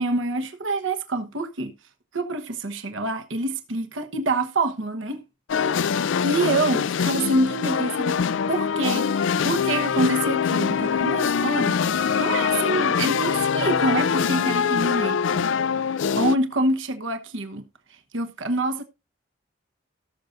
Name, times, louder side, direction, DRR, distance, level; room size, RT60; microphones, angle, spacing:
voice 1, 0.0-1.7 2.1-5.2 6.2-8.1 8.5-11.8 12.2-15.4 16.2-17.6 18.1-18.8, right 2 dB, 80° right, 1.2 m, -26 dB
sound 1, 5.5-16.4, left 6 dB, 70° left, 0.4 m, -23 dB
18.0 x 6.5 x 2.6 m
head